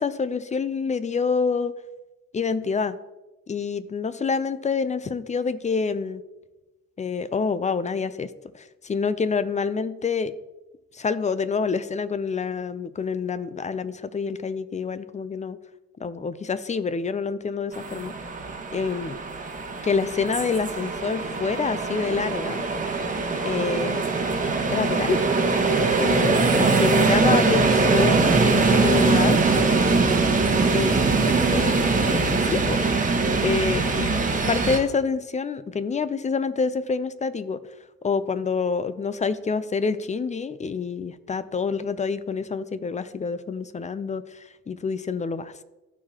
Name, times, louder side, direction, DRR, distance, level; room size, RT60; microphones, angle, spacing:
voice 1, 0.0-1.7 2.3-3.0 3.5-6.2 7.0-10.3 10.9-15.6 16.0-18.2 18.7-19.2 19.8-22.7 23.4-24.0 24.7-25.3 26.0-29.4 30.7-31.0 31.2-31.8 32.1-32.9 33.4-37.6 38.0-45.6, left 5 dB, 25° left, 14 dB, 0.5 m, -27 dB
sound 1, 17.7-34.8, right 3 dB, 25° right, 1.2 m, -22 dB
14.0 x 4.8 x 2.9 m, 1.1 s
cardioid pair, 90°, 30 cm